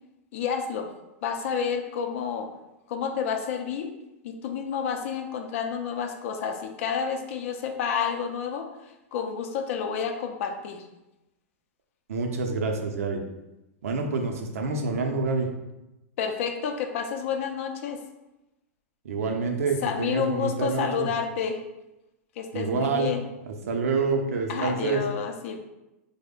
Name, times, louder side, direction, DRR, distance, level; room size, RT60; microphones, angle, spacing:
voice 1, 0.3-0.9 1.2-2.5 2.9-3.9 4.2-8.7 9.1-10.8 16.2-18.0 19.8-21.6 22.4-23.2 24.5-25.6, left 7 dB, 65° left, 4 dB, 0.5 m, -29 dB
voice 2, 12.1-13.2 13.8-15.5 19.0-21.1 22.5-23.1 23.7-25.0, right 4 dB, 85° right, 3 dB, 0.6 m, -27 dB
3.3 x 2.1 x 3.6 m, 0.97 s
hypercardioid pair, 130°, 8 cm